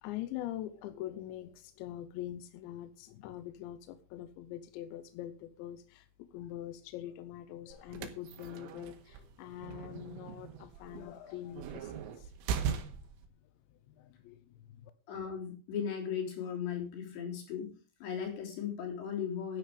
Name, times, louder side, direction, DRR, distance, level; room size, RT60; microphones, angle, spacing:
voice 1, 0.0-12.3 13.7-14.9, left 12 dB, 80° left, 11 dB, 2.8 m, -44 dB
sound 1, 7.7-13.3, right 7 dB, 80° right, 4.1 m, -40 dB
voice 2, 15.1-17.7 18.0-19.6, left 7 dB, 60° left, 1 dB, 5.7 m, -37 dB
13.0 x 10.5 x 5.1 m, 0.36 s
omnidirectional pair, 5.8 m